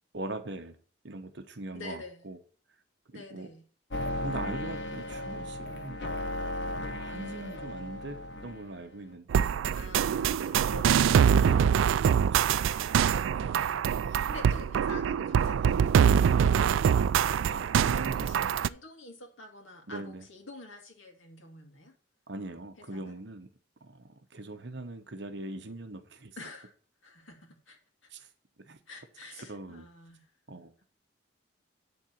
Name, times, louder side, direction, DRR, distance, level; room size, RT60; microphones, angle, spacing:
voice 1, 0.1-0.8 1.0-2.4 3.1-3.5 4.2-6.0 6.8-9.6 11.3-11.8 12.3-12.5 14.1-14.2 17.5-18.5 19.9-20.2 22.3-23.5 23.8-26.4 28.1-28.3 28.6-28.8 29.5-29.9 30.5-30.7, right 2 dB, 60° right, 1.0 m, -41 dB
voice 2, 1.7-2.3 3.1-3.6 9.7-11.6 12.6-21.9 22.8-23.1 26.4-26.7 27.0-27.8 28.9-30.3, left 3 dB, 75° left, 2.3 m, -48 dB
sound 1, 3.9-8.8, left 1 dB, 60° left, 1.3 m, -36 dB
sound 2, 9.3-18.7, right 8 dB, 80° right, 0.3 m, -24 dB
10.5 x 4.0 x 7.3 m
head